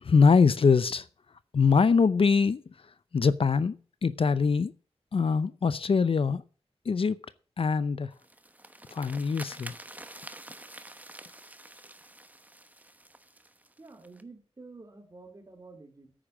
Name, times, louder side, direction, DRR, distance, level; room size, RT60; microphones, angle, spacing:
voice 1, 0.0-1.1 1.5-2.6 3.1-4.7 5.1-6.4 6.9-7.2 7.6-8.1 8.9-9.7, left 5 dB, 60° left, 0.6 m, -23 dB
sound 1, 8.1-14.2, right 1 dB, 15° right, 1.0 m, -47 dB
voice 2, 13.8-16.3, right 3 dB, 35° right, 3.0 m, -50 dB
10.0 x 8.8 x 7.3 m
wide cardioid pair, 105°, 11 cm